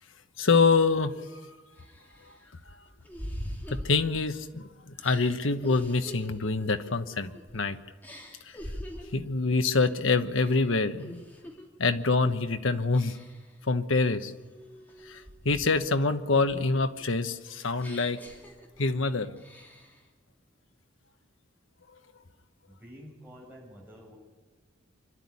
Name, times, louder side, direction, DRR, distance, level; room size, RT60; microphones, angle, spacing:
voice 1, 0.4-1.4 3.7-7.8 9.1-11.2 11.8-13.2 13.7-14.3 15.1-18.2 18.8-19.3, left 4 dB, 80° left, 8 dB, 1.1 m, -26 dB
sound 1, 1.1-1.2 1.8-4.5 5.0-7.6 8.0-9.3 9.7-10.0 10.4-11.7 12.1-12.4 12.9-13.5 14.0-15.9 16.3-19.0 19.4-20.0, equal, 10° left, 2.9 m, -44 dB
voice 2, 22.7-24.2, equal, 10° right, -3 dB, 7.5 m, -49 dB
25.5 x 12.0 x 9.7 m, 1.4 s
head